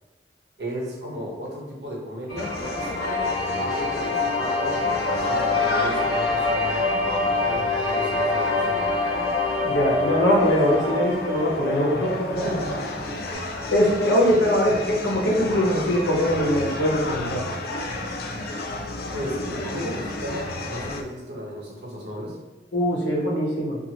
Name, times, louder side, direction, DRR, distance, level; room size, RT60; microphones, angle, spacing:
voice 1, 0.6-8.8 12.3-12.7 19.1-22.4, equal, 70° right, -4 dB, 1.0 m, -35 dB
sound 1, 2.3-13.3, left 3 dB, 45° right, 1.0 m, -26 dB
sound 2, 2.4-21.0, left 2 dB, 60° left, 0.3 m, -33 dB
voice 2, 9.6-12.8 13.2-13.4 13.7-17.4 22.7-23.8, equal, 80° left, -4 dB, 0.9 m, -22 dB
2.7 x 2.6 x 2.9 m, 1.2 s
head